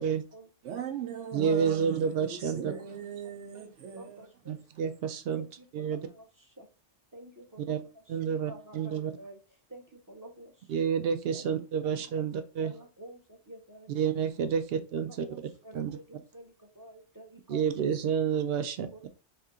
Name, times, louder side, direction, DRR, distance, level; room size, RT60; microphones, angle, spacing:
voice 1, 0.0-0.5 2.4-2.8 3.2-3.3 3.9-4.6 5.3-6.7 7.1-9.4 9.7-10.7 11.3-12.2 12.6-14.0 14.5-14.6 14.9-17.9 18.9-19.1, right 1 dB, 20° right, 0.6 m, -50 dB
voice 2, 0.6-4.3 4.7-4.8, right 8 dB, 85° right, 1.0 m, -39 dB
voice 3, 1.3-2.7 4.5-5.4 5.7-6.0 7.7-7.8 8.1-9.1 10.7-12.7 13.9-14.6 14.9-15.3 15.7-15.9 17.5-19.1, right 7 dB, 60° right, 0.7 m, -29 dB
3.3 x 2.9 x 3.6 m
omnidirectional pair, 1.2 m